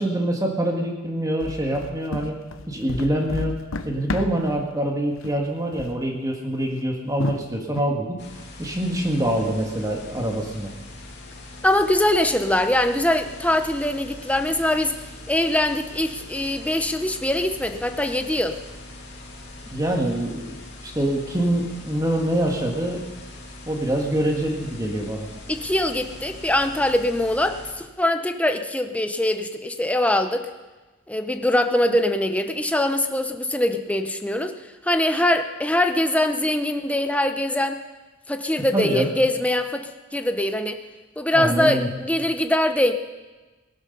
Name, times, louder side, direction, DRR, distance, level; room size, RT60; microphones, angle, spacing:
voice 1, 0.0-2.4 2.7-3.6 3.8-8.2 8.6-10.7 19.7-20.6 20.8-23.0 23.7-25.3 38.7-39.1 41.3-41.9, right 1 dB, 20° right, 1 dB, 1.8 m, -25 dB
sound 1, 1.4-4.6 5.1-5.5 5.7-5.9 6.5-6.6 7.2-7.8, left 2 dB, 80° left, 0.9 m, -31 dB
sound 2, 8.2-27.7, left 2 dB, 60° left, 2.7 m, -42 dB
voice 2, 11.6-15.0 15.3-18.6 25.5-30.5 31.1-34.5 34.8-37.8 38.3-40.8 41.2-42.9, left 1 dB, 5° left, 7 dB, 0.9 m, -22 dB
18.0 x 12.5 x 5.4 m, 1.2 s
head